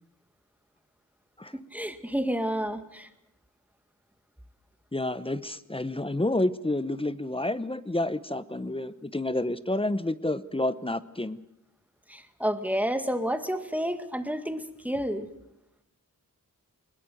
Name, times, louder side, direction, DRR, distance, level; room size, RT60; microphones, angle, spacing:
voice 1, 1.5-3.1 12.1-15.3, equal, 5° right, 8 dB, 2.0 m, -30 dB
voice 2, 4.9-11.4, left 1 dB, 15° left, 14 dB, 0.8 m, -29 dB
21.0 x 20.5 x 7.8 m, 0.85 s
wide cardioid pair, 80°, 33 cm